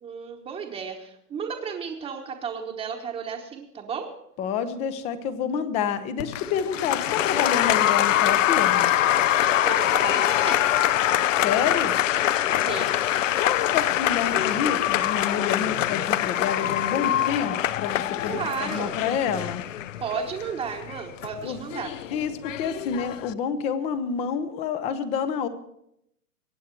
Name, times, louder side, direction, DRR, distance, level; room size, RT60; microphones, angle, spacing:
voice 1, 0.0-4.1 9.6-10.7 12.5-13.0 18.3-18.9 20.0-21.9, right 6 dB, 10° right, -3 dB, 1.1 m, -33 dB
voice 2, 4.4-8.9 11.4-12.0 13.4-19.6 21.4-21.6 22.1-25.5, left 7 dB, 15° left, 13 dB, 0.6 m, -28 dB
Applause, 6.2-23.3, left 12 dB, 55° left, 0.7 m, -24 dB
23.5 x 9.2 x 4.5 m, 0.77 s
hypercardioid pair, 140°, 47 cm